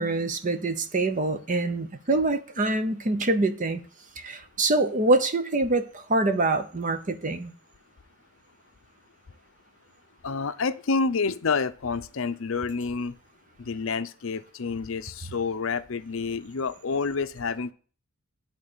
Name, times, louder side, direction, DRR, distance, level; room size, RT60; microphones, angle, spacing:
voice 1, 0.0-3.8 4.2-7.5, right 2 dB, 40° right, 0.8 m, -25 dB
voice 2, 10.2-13.1 13.7-17.7, left 4 dB, 65° left, 0.6 m, -28 dB
11.0 x 3.9 x 6.7 m
head